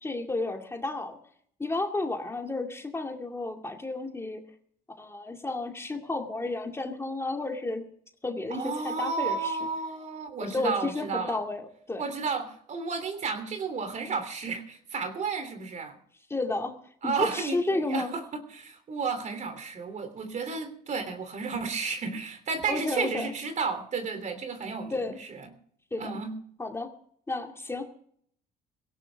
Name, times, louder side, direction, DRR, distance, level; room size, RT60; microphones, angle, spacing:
voice 1, 0.0-1.2 1.6-4.4 5.0-7.9 8.2-9.6 10.4-12.0 16.3-16.7 17.0-18.1 22.7-23.3 24.9-25.2 25.9-26.1 26.6-26.9 27.3-28.0, left 2 dB, 15° left, 3 dB, 2.3 m, -32 dB
voice 2, 8.5-11.4 12.0-16.0 17.0-18.2 18.5-24.9 25.2-25.5 26.0-26.3, right 5 dB, 45° right, 8 dB, 3.2 m, -32 dB
17.5 x 17.0 x 3.5 m, 0.63 s
cardioid pair, 110°, 17 cm